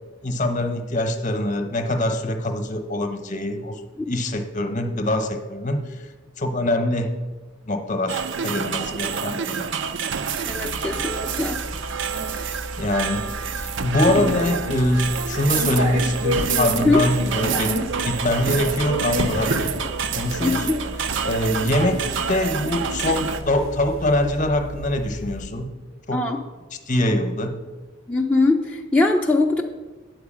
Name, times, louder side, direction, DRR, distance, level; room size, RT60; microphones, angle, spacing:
voice 1, 0.2-3.8 4.1-6.1 6.4-7.1 7.7-9.7 12.3-12.5 12.7-13.3 13.6-19.6 20.1-20.7 21.2-25.7 26.1-26.2 26.9-27.6, left 1 dB, 40° left, 6 dB, 0.9 m, -24 dB
sound 1, 8.1-23.4, right 6 dB, 60° right, 0.5 m, -28 dB
voice 2, 10.4-11.6 16.8-17.0 20.4-20.8 26.1-26.4 28.1-29.6, left 2 dB, 10° left, -1 dB, 0.5 m, -21 dB
sound 2, 10.4-25.5, equal, 80° right, 0.9 m, -32 dB
9.3 x 4.6 x 7.4 m, 1.2 s
head